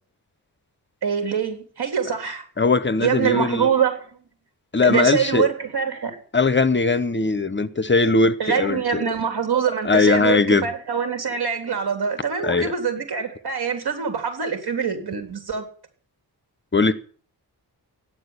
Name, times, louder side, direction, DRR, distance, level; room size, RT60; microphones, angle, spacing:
voice 1, 1.0-2.4 3.0-4.1 4.8-6.2 8.4-15.7, right 7 dB, 70° right, 3.7 m, -24 dB
voice 2, 2.6-3.7 4.7-5.5 6.3-9.0 9.8-10.7 12.4-12.7 16.7-16.9, left 3 dB, 30° left, 0.9 m, -19 dB
13.0 x 10.0 x 8.3 m
wide cardioid pair, 125°, 39 cm